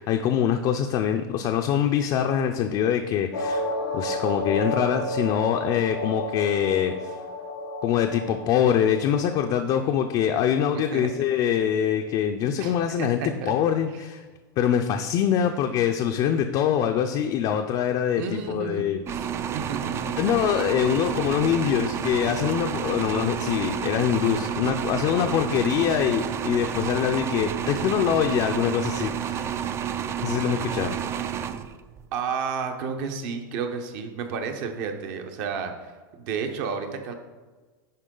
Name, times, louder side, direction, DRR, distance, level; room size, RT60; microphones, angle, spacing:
voice 1, 0.0-3.6 3.9-7.2 7.8-13.2 13.5-14.2 14.6-19.0 20.2-29.4 30.2-31.0, left 9 dB, 40° left, 4 dB, 0.4 m, -24 dB
sound 1, 3.3-9.6, left 1 dB, 90° left, 0.6 m, -32 dB
voice 2, 10.7-11.1 12.6-13.5 13.9-14.0 18.2-18.8 19.1-19.3 19.5-20.1 32.1-37.1, right 6 dB, 55° right, 6 dB, 1.0 m, -32 dB
sound 2, 19.1-32.1, right 9 dB, 25° right, 0.3 m, -30 dB
9.9 x 3.7 x 3.8 m, 1.3 s
supercardioid pair, 130°, 11 cm